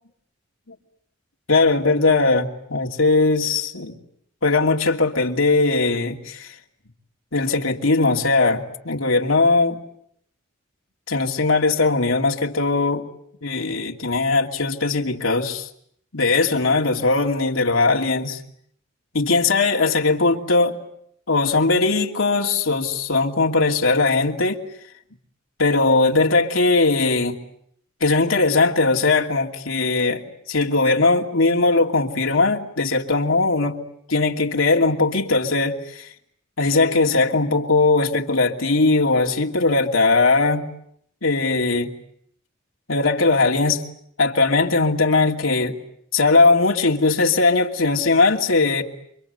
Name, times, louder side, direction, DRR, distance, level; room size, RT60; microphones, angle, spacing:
voice 1, 1.5-4.0 4.4-6.5 7.3-9.8 11.1-13.0 13.4-15.7 16.1-18.4 19.1-20.8 21.3-24.6 25.6-27.4 28.0-30.2 30.5-33.8 34.1-36.1 36.6-40.6 41.2-41.9 42.9-43.8 44.2-45.8 46.1-48.8, left 3 dB, 90° left, 2.7 m, -19 dB
29.0 x 25.0 x 8.1 m
head